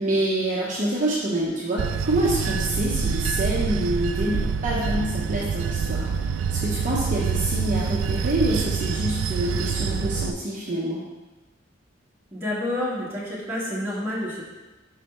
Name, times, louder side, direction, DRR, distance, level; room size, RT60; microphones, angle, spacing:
voice 1, 0.0-11.0, right 1 dB, 40° right, -5 dB, 0.8 m, -26 dB
Bell / Train, 1.8-10.3, right 6 dB, 85° right, 0.3 m, -26 dB
voice 2, 12.3-14.5, left 1 dB, 10° right, -7 dB, 1.7 m, -29 dB
5.5 x 4.9 x 4.4 m, 1.2 s
head